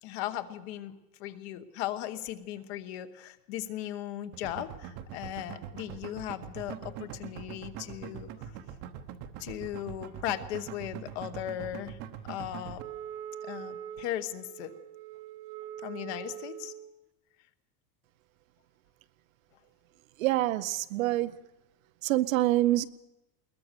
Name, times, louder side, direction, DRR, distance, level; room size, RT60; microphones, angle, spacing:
voice 1, 0.0-8.5 9.4-12.0 12.3-12.8 13.4-14.7 15.8-16.7, left 12 dB, 40° left, 1.2 m, -37 dB
sound 1, 4.3-12.8, right 9 dB, 30° right, 1.0 m, -42 dB
Wind instrument woodwind instrument, 12.8-16.9, right 10 dB, 70° right, 1.8 m, -43 dB
voice 2, 20.2-21.3 22.0-22.9, right 15 dB, 55° right, 0.7 m, -26 dB
21.5 x 19.5 x 6.8 m
supercardioid pair, 170°, 50 cm